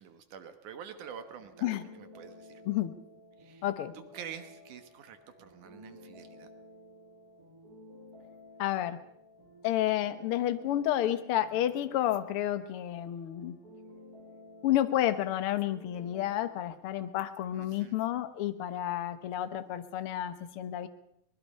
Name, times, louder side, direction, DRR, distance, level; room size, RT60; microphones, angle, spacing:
voice 1, 0.0-2.6 3.4-3.6 3.9-6.5 17.5-18.0, right 8 dB, 75° right, 9 dB, 2.7 m, -47 dB
sound 1, 1.0-16.6, left 1 dB, 25° right, 6.7 m, -54 dB
voice 2, 3.6-3.9 8.6-9.0 9.6-13.6 14.6-20.9, left 12 dB, 60° left, 11 dB, 1.5 m, -30 dB
24.5 x 20.0 x 5.5 m, 0.74 s
omnidirectional pair, 3.6 m